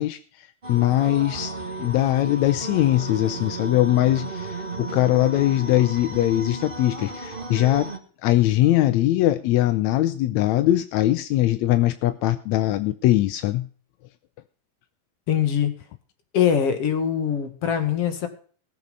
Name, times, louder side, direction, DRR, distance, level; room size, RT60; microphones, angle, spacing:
voice 1, 0.0-1.5 1.8-7.9 8.2-13.7, left 14 dB, 75° left, 12 dB, 1.7 m, -21 dB
sound 1, 0.6-8.0, right 2 dB, 35° right, 0.9 m, -34 dB
voice 2, 15.3-15.8 16.3-18.3, left 8 dB, 50° left, 8 dB, 2.7 m, -22 dB
19.0 x 7.5 x 5.2 m, 0.43 s
omnidirectional pair, 3.9 m